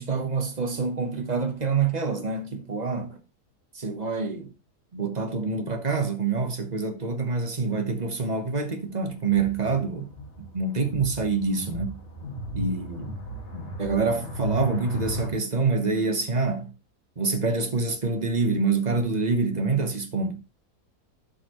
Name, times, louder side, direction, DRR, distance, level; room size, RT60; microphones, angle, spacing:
voice 1, 0.0-3.2 3.7-4.5 4.9-10.1 10.5-12.0 12.5-13.1 13.8-16.7 17.2-20.4, right 4 dB, 30° right, 1.0 m, -26 dB
sound 1, 9.1-15.3, right 1 dB, 45° left, 2.2 m, -35 dB
12.0 x 5.5 x 3.0 m
omnidirectional pair, 1.7 m